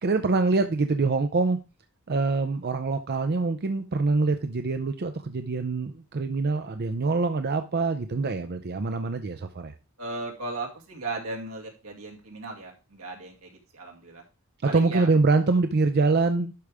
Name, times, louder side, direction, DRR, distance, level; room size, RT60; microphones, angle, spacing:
voice 1, 0.0-1.6 2.1-9.7 14.6-16.5, right 3 dB, 50° right, 7 dB, 0.6 m, -25 dB
voice 2, 10.0-14.2 14.6-15.1, right 3 dB, 90° right, 0 dB, 2.2 m, -36 dB
11.5 x 4.9 x 3.5 m, 0.31 s
head